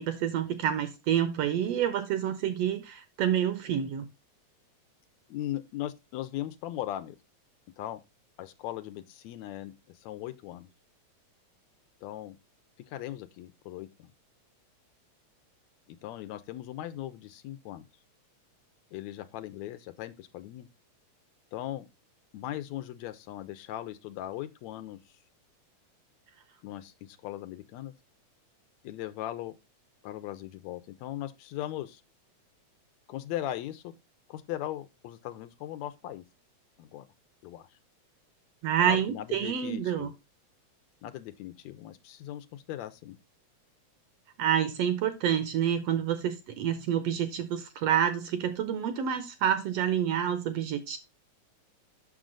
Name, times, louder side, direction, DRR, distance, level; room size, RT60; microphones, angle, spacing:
voice 1, 0.0-4.0 38.6-40.1 44.4-51.0, right 9 dB, 75° right, 1.5 m, -28 dB
voice 2, 5.3-7.2 7.8-8.0 8.4-10.7 12.0-12.4 12.9-14.1 15.9-17.9 18.9-20.7 21.5-21.9 22.3-25.0 26.6-27.9 28.8-29.6 30.0-32.0 33.1-33.9 34.3-36.2 36.8-37.1 37.4-37.7 38.8-40.1 41.0-43.2, left 13 dB, 80° left, 1.9 m, -38 dB
6.9 x 6.2 x 3.8 m
omnidirectional pair, 3.3 m